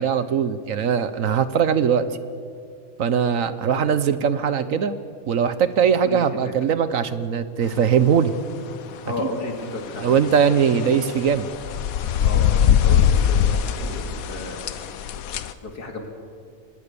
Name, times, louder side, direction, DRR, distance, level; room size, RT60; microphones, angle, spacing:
voice 1, 0.0-2.1 3.0-5.0 5.3-8.3 10.0-11.5, right 7 dB, 60° right, 13 dB, 1.3 m, -20 dB
voice 2, 6.0-6.5 9.1-10.0 12.2-14.6 15.6-16.1, left 3 dB, 85° left, 3 dB, 3.2 m, -33 dB
sound 1, 9.6-15.5, left 9 dB, 70° left, 1.2 m, -22 dB
24.0 x 19.5 x 6.9 m, 2.2 s
omnidirectional pair, 1.6 m